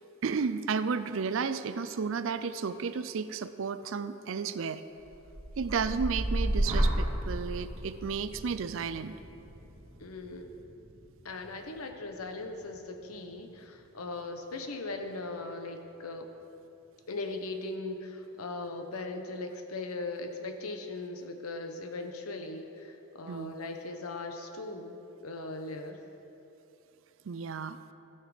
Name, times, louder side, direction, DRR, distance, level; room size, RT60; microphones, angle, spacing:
voice 1, 0.2-4.8 5.6-9.1 23.3-23.6 27.3-27.8, right 5 dB, 60° right, 12 dB, 0.4 m, -33 dB
sound 1, 5.0-13.1 13.5-14.0, right 1 dB, 35° right, 2.1 m, -34 dB
voice 2, 10.0-10.5 11.2-16.3 17.1-24.9 25.2-26.0, left 2 dB, 85° left, 5 dB, 1.0 m, -39 dB
15.5 x 5.7 x 5.1 m, 3.0 s
head